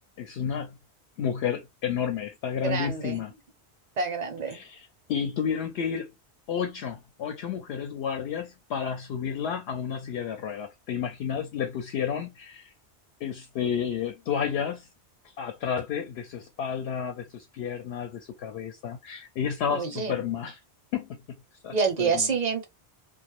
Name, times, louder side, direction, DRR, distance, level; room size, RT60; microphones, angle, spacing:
voice 1, 0.2-0.8 1.2-3.3 4.5-6.1 6.5-12.7 13.2-14.9 15.4-20.6 20.9-21.2 21.6-22.3, left 7 dB, 70° left, 0.8 m, -31 dB
voice 2, 2.6-3.2 4.0-4.6 19.7-20.2 21.7-22.6, right 5 dB, 50° right, 0.6 m, -27 dB
2.2 x 2.0 x 2.8 m
omnidirectional pair, 1.2 m